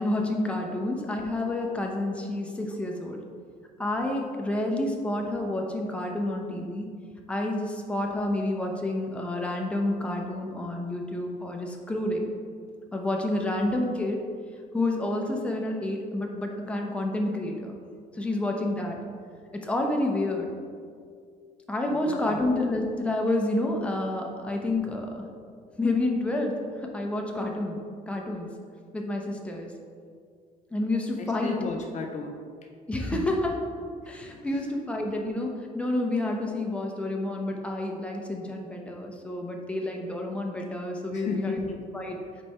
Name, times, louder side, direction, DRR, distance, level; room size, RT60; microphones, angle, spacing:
voice 1, 0.0-3.2 3.8-6.9 7.3-12.3 12.9-14.2 14.7-17.8 18.1-19.0 19.5-20.5 21.7-25.2 25.8-27.8 28.1-28.5 28.9-29.7 30.7-31.6 32.9-33.7 34.1-41.7 41.9-42.2, left 1 dB, 5° left, 1 dB, 0.7 m, -29 dB
voice 2, 21.9-22.5 31.2-32.7 33.1-33.3 34.0-34.7 41.1-41.8, left 5 dB, 45° left, 3 dB, 0.5 m, -36 dB
5.4 x 4.2 x 4.3 m, 2.2 s
cardioid pair, 110°, 17 cm